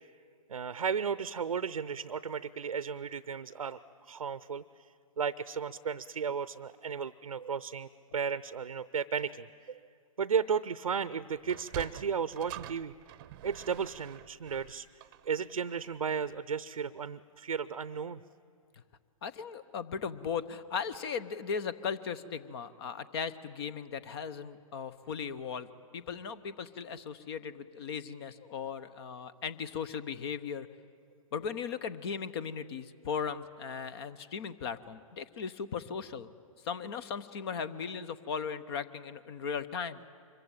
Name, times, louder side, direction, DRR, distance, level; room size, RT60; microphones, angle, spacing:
voice 1, 0.5-4.6 5.2-9.8 10.2-12.9 13.4-14.9 15.2-18.2, right 6 dB, 80° right, 16 dB, 0.6 m, -34 dB
Sliding door, 11.4-16.0, right 14 dB, 35° right, 0.7 m, -47 dB
voice 2, 19.2-25.7 25.9-30.7 31.3-36.3 36.6-40.0, left 6 dB, 45° left, 16 dB, 0.9 m, -37 dB
25.0 x 23.0 x 8.8 m, 2.2 s
figure-of-eight pair, 120°, 18 cm